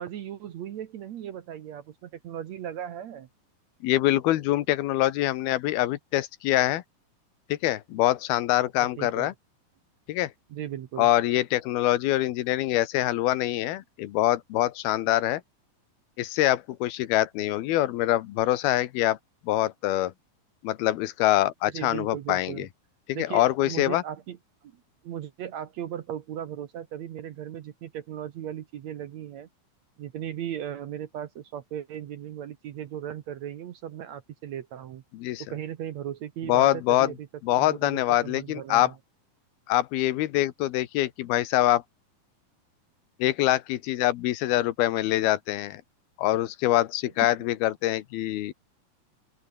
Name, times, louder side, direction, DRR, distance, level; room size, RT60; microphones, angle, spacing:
voice 1, 0.0-3.3 8.8-9.3 10.5-11.1 21.7-22.7 23.1-24.4 24.6-29.5 30.0-35.0 35.5-37.3 37.6-38.9, right 10 dB, 65° right, 2.0 m, -37 dB
voice 2, 3.8-6.8 7.5-9.3 10.1-10.3 11.0-15.4 16.2-19.2 19.4-20.1 20.6-22.7 23.1-24.0 35.1-35.4 36.5-37.1 37.4-38.9 39.7-41.8 43.2-45.8 46.2-48.5, left 15 dB, 90° left, 3.1 m, -24 dB
open air
omnidirectional pair, 4.3 m